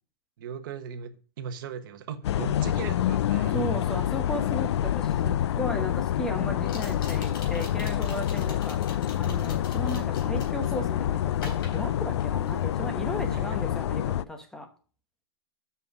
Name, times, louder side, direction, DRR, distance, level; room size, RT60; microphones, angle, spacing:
voice 1, 0.4-3.6 9.8-9.9 13.3-13.6, right 7 dB, 50° right, 1.2 m, -38 dB
sound 1, 2.2-14.2, left 11 dB, 80° left, 0.4 m, -27 dB
voice 2, 3.5-8.9 9.2-14.7, equal, 5° left, 1.0 m, -35 dB
sound 2, 4.9-5.0 6.6-10.8 11.3-12.7 13.0-13.3, left 4 dB, 60° left, 3.3 m, -45 dB
7.7 x 5.6 x 6.0 m
supercardioid pair, 175°, 14 cm